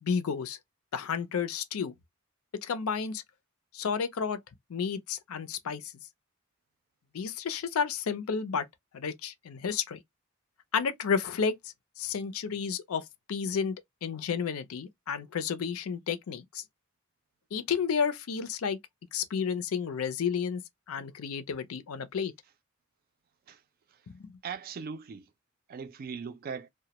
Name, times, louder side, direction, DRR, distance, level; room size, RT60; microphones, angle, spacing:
voice 1, 0.0-0.6 0.9-1.9 2.6-3.2 3.7-4.4 4.7-5.9 7.1-8.7 8.9-10.0 10.7-11.5 12.0-13.7 14.0-16.6 17.5-18.8 19.1-20.6 20.9-22.3 24.2-24.3, left 6 dB, 90° left, 0.5 m, -31 dB
voice 2, 24.4-25.3 25.7-26.7, right 6 dB, 45° right, 0.3 m, -39 dB
2.1 x 2.0 x 2.8 m
head